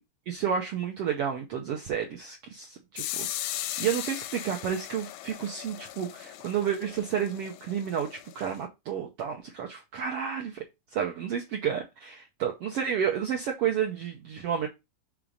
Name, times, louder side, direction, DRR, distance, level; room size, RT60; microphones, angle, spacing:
voice 1, 0.3-10.6 10.9-14.7, right 8 dB, 75° right, 1.4 m, -31 dB
sound 1, 3.0-8.6, left 14 dB, 80° left, 1.8 m, -38 dB
6.0 x 3.7 x 5.0 m
omnidirectional pair, 3.8 m